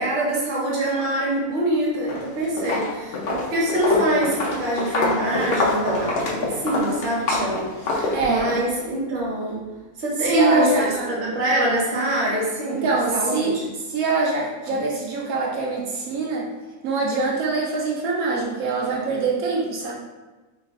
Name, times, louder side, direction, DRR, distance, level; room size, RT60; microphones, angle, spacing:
voice 1, 0.0-9.6 10.0-13.6, right 1 dB, 40° right, -5 dB, 0.8 m, -24 dB
Walk footsteps, 1.9-2.3 2.6-8.6, left 2 dB, 55° left, 0.7 m, -25 dB
voice 2, 8.1-8.5 10.2-11.4 12.7-13.6 13.9-16.5 16.8-19.9, right 3 dB, 75° right, -2 dB, 1.0 m, -24 dB
3.0 x 2.3 x 3.5 m, 1.2 s
omnidirectional pair, 1.5 m